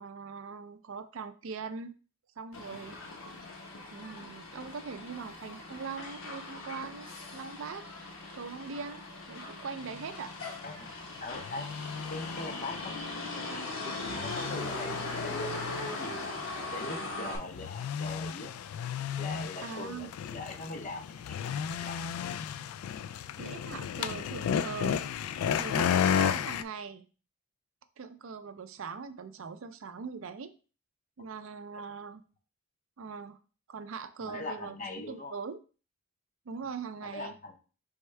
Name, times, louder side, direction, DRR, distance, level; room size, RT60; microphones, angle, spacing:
voice 1, 0.0-1.9 2.4-3.0 3.9-7.9 8.3-10.3 19.6-20.1 23.4-25.0 25.6-27.0 28.0-30.5 31.2-32.2 33.0-33.4 33.7-35.6 36.5-37.3, right 5 dB, 65° right, 10 dB, 0.4 m, -41 dB
Motor vehicle (road), 2.5-17.4, left 2 dB, 65° left, 1.0 m, -40 dB
sound 1, 10.0-10.1 10.7-10.8 11.4-26.6, left 8 dB, 85° left, 0.3 m, -34 dB
voice 2, 11.2-11.7 12.1-12.9 13.4-15.6 15.9-16.1 16.7-18.5 19.2-22.0 31.7-31.8 34.2-35.3 37.0-37.6, left 2 dB, 35° left, 5 dB, 0.6 m, -41 dB
4.5 x 3.5 x 3.2 m, 0.36 s
head